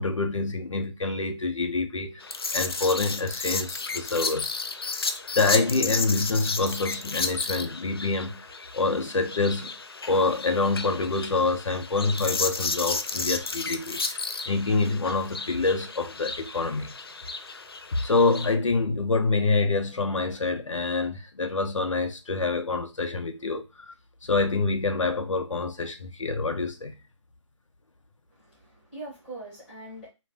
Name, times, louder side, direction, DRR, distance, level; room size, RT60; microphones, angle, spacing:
voice 1, 0.0-2.2 2.5-8.5 8.7-9.7 10.1-14.2 14.5-16.9 18.0-23.9 24.2-27.0, left 3 dB, 80° left, 0.7 m, -26 dB
sound 1, 2.2-18.5, left 4 dB, 50° left, 0.4 m, -33 dB
voice 2, 28.3-30.1, right 2 dB, 5° left, 1.1 m, -42 dB
2.6 x 2.2 x 3.5 m
figure-of-eight pair, 170°, 16 cm